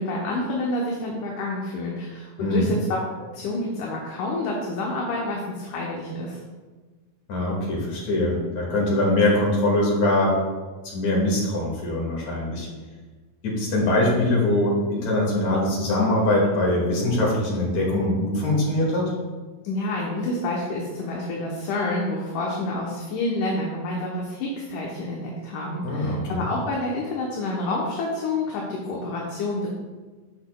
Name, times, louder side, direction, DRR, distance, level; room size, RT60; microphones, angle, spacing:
voice 1, 0.0-6.4 19.6-29.7, left 2 dB, 70° left, -2 dB, 2.2 m, -28 dB
voice 2, 2.4-2.7 7.3-10.4 10.8-12.7 13.4-19.1 25.8-26.4, left 1 dB, 55° left, -3 dB, 2.9 m, -22 dB
12.0 x 5.7 x 2.2 m, 1.3 s
omnidirectional pair, 4.0 m